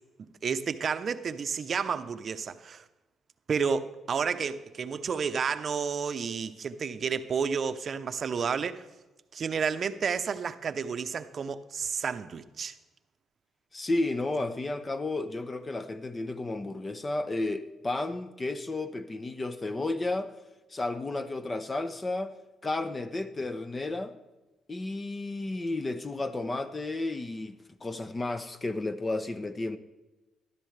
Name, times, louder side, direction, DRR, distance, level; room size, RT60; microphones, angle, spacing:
voice 1, 0.4-2.8 3.5-8.9 9.3-12.7, right 6 dB, 50° right, 0.7 m, -31 dB
voice 2, 13.7-20.3 20.7-22.3 22.6-24.1 24.7-29.8, left 2 dB, 25° left, 0.8 m, -32 dB
14.0 x 12.5 x 3.3 m
cardioid pair, 90°, 0 cm